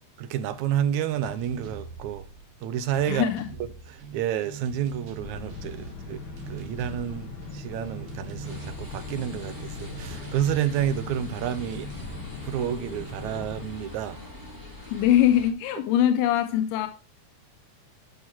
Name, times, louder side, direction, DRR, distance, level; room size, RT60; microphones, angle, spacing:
voice 1, 0.2-2.3 2.6-3.3 3.9-11.9 12.4-14.2, right 10 dB, 75° right, 1.9 m, -30 dB
sound 1, 1.0-13.7, right 5 dB, 60° right, 2.3 m, -44 dB
voice 2, 3.1-3.5 14.9-16.9, left 11 dB, 90° left, 2.2 m, -22 dB
sound 2, 5.2-13.7, left 5 dB, 55° left, 1.6 m, -40 dB
sound 3, 8.4-15.5, left 2 dB, 10° right, 1.3 m, -44 dB
11.0 x 5.5 x 4.4 m
omnidirectional pair, 3.7 m